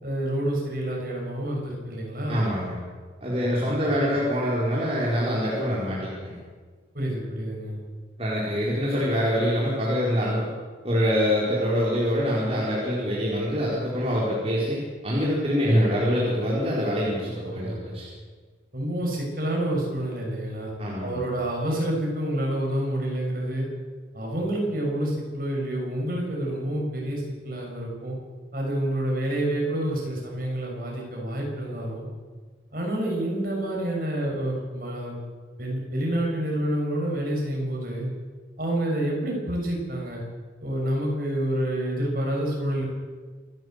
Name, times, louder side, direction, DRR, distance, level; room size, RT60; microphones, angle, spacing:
voice 1, 0.0-2.4 3.3-3.8 6.9-7.8 15.6-15.8 17.4-17.8 18.7-20.7 21.0-23.7 24.1-28.2 28.5-32.1 32.7-35.2 35.6-38.1 38.6-40.2 40.6-42.8, right 1 dB, 50° right, -2 dB, 7.0 m, -28 dB
voice 2, 2.3-2.8 3.2-6.4 8.2-10.5 10.8-14.8 15.0-18.1 20.8-21.1, equal, 35° right, -6 dB, 4.4 m, -25 dB
27.0 x 12.0 x 8.1 m, 1.5 s
head